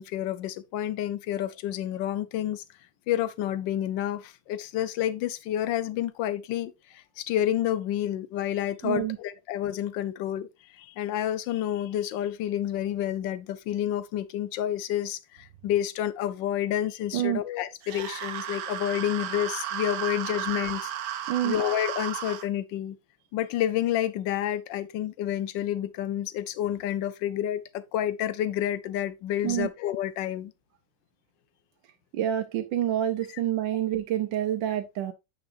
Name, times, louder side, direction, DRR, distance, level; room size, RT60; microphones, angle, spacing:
voice 1, 0.0-2.6 3.1-10.5 10.7-20.9 21.2-23.0 23.3-30.5, left 11 dB, 75° left, 1.4 m, -29 dB
voice 2, 8.8-9.2 17.1-17.4 21.3-21.6 29.4-29.7 32.1-35.1, right 11 dB, 85° right, 1.4 m, -27 dB
sound 1, 17.8-22.5, right 10 dB, 70° right, 1.3 m, -34 dB
9.4 x 5.9 x 2.6 m
omnidirectional pair, 2.0 m